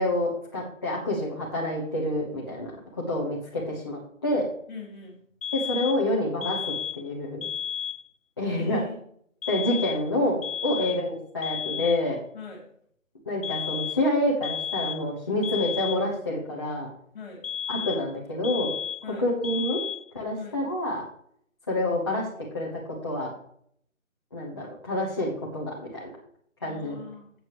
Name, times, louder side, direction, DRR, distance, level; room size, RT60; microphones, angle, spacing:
voice 1, 0.0-2.7 3.1-4.4 5.5-6.6 7.0-7.5 8.4-8.8 9.5-12.2 13.3-16.9 17.7-18.7 19.2-19.8 20.1-21.0 21.7-22.3 22.5-23.3 24.3-26.1 26.6-27.0, left 1 dB, 20° left, -6 dB, 1.1 m, -27 dB
voice 2, 4.7-5.1 8.5-9.0 10.7-10.9 12.3-12.6 17.1-17.5 19.0-19.3 20.4-20.6 26.7-27.3, left 4 dB, 35° left, 0 dB, 3.6 m, -41 dB
sound 1, 5.4-6.1 6.4-7.1 7.4-8.1 9.4-10.1 10.4-11.1 11.4-12.1 13.4-14.1 14.4-15.1 15.4-16.1 17.4-18.1 18.4-19.1 19.4-20.1, left 8 dB, 70° left, 0.7 m, -33 dB
11.5 x 8.0 x 3.2 m, 0.65 s
figure-of-eight pair, 165°, 40 cm